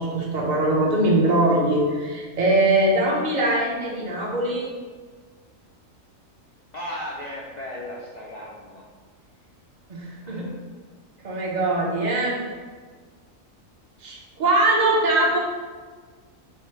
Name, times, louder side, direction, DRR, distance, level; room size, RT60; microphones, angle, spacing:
voice 1, 0.0-4.7 9.9-10.5 11.2-12.4 14.0-15.4, right 2 dB, 40° right, -3 dB, 0.8 m, -22 dB
voice 2, 6.7-8.9 10.2-10.5, left 1 dB, 90° left, -3 dB, 0.3 m, -36 dB
4.5 x 2.1 x 4.4 m, 1.5 s
omnidirectional pair, 1.4 m